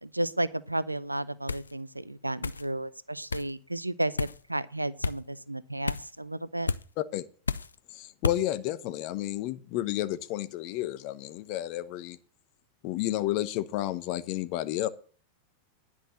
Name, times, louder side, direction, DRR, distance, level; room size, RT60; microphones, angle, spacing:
voice 1, 0.0-6.7, right 1 dB, 85° right, 0.5 m, -33 dB
sound 1, 1.5-1.7 2.4-2.7 3.3-3.5 4.2-4.4 5.0-5.2 5.9-6.1 6.7-6.8 7.5-7.7 8.2-8.4, left 4 dB, 75° left, 0.4 m, -31 dB
voice 2, 7.0-7.3 7.9-12.2 12.8-14.9, left 14 dB, 45° left, 0.9 m, -31 dB
10.5 x 6.1 x 7.4 m
figure-of-eight pair, 90°, 0 cm